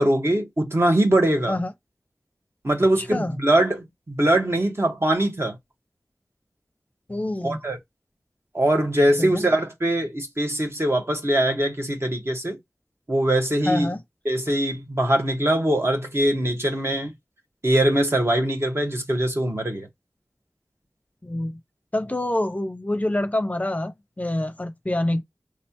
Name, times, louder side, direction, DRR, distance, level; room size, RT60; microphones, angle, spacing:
voice 1, 0.0-1.6 2.6-5.5 7.4-7.8 8.5-12.6 13.1-13.9 14.2-17.1 17.6-19.9, right 1 dB, 45° right, 1.5 m, -22 dB
voice 2, 3.0-3.4 7.1-7.6 9.2-9.4 13.7-14.0 21.2-21.6 21.9-25.2, left 1 dB, 25° left, 0.6 m, -26 dB
4.8 x 3.3 x 2.9 m
wide cardioid pair, 65°, 6 cm